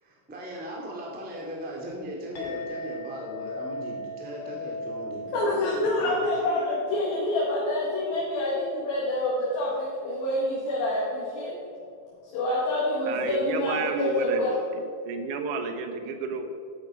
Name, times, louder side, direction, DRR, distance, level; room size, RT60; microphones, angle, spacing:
voice 1, 0.0-6.2, equal, 5° right, -3 dB, 0.8 m, -38 dB
Chink clink, 2.3-11.1, left 1 dB, 45° left, 3.1 m, -40 dB
voice 2, 5.3-11.6 12.3-14.6, left 1 dB, 90° left, -6 dB, 3.5 m, -27 dB
voice 3, 13.1-16.5, right 4 dB, 70° right, 6 dB, 2.2 m, -31 dB
11.5 x 9.1 x 4.8 m, 2.3 s
omnidirectional pair, 4.2 m